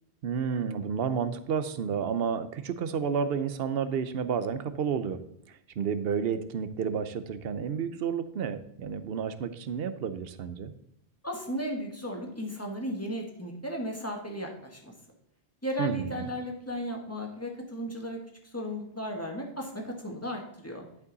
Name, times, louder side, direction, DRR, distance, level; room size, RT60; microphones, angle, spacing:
voice 1, 0.2-5.2 5.8-10.7 15.8-16.3, right 7 dB, 65° right, 11 dB, 0.8 m, -31 dB
voice 2, 11.2-14.9 15.6-18.2 18.4-20.8, equal, 15° left, 1 dB, 1.4 m, -35 dB
11.0 x 5.4 x 4.0 m, 0.76 s
omnidirectional pair, 1.1 m